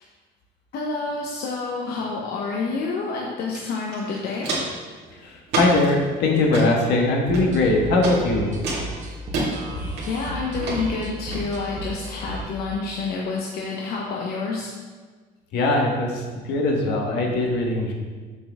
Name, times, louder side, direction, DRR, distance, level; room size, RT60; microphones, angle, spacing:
voice 1, 0.7-4.5 10.1-14.7, left 4 dB, 70° left, -2 dB, 0.9 m, -28 dB
Walk footsteps, 3.5-3.6 3.9-4.8 5.5-5.9 6.4-6.7 7.3-7.7 8.0-8.2 8.6-9.5 10.0-10.3 10.6-10.8 11.3-11.4, right 2 dB, 80° right, 2.1 m, -27 dB
voice 2, 5.2-8.6 15.5-17.9, left 2 dB, 85° left, 0 dB, 1.5 m, -21 dB
sound 1, 7.3-12.5, right 1 dB, 45° right, 1.2 m, -35 dB
7.0 x 6.3 x 3.5 m, 1.4 s
cardioid pair, 110°, 17 cm